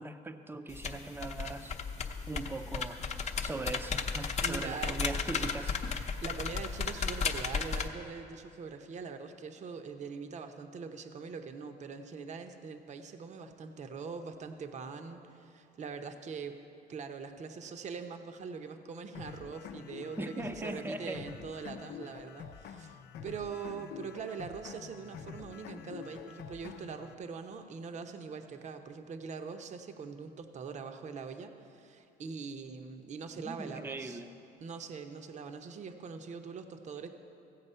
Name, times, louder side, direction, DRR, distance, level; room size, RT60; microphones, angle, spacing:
voice 1, 0.0-1.8 2.3-3.0 3.4-5.8 20.2-21.3 33.4-34.3, right 2 dB, 15° right, 9 dB, 0.6 m, -40 dB
sound 1, 0.7-7.9, left 5 dB, 40° left, 0.8 m, -35 dB
voice 2, 4.4-5.1 6.2-16.6 16.9-34.2 34.6-37.1, right 5 dB, 45° right, 7 dB, 0.8 m, -43 dB
sound 2, 19.1-27.1, left 7 dB, 70° left, 0.6 m, -47 dB
15.0 x 8.0 x 5.6 m, 2.7 s
cardioid pair, 110°, 17 cm